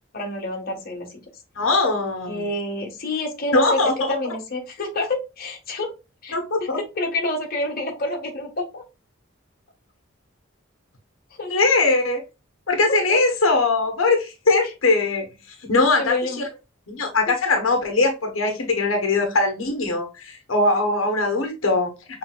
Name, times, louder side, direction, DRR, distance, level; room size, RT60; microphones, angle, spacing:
voice 1, 0.1-1.1 2.3-5.9 6.2-8.8 11.4-11.5 12.9-13.2 16.0-16.4, left 2 dB, 50° left, 1.3 m, -28 dB
voice 2, 1.6-2.5 3.5-4.1 6.3-6.8 11.5-12.2 12.7-15.3 15.6-16.4 16.9-21.9, left 3 dB, 85° left, 1.1 m, -21 dB
5.8 x 3.5 x 2.3 m
head